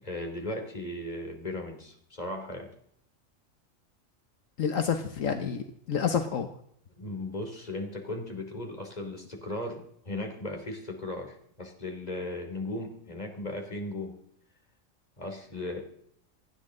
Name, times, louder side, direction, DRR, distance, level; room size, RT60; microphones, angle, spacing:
voice 1, 0.0-2.7 7.0-14.2 15.2-15.8, left 1 dB, 30° left, 3 dB, 3.2 m, -37 dB
voice 2, 4.6-6.5, left 7 dB, 75° left, 7 dB, 1.4 m, -29 dB
28.5 x 9.8 x 3.9 m, 0.68 s
omnidirectional pair, 1.4 m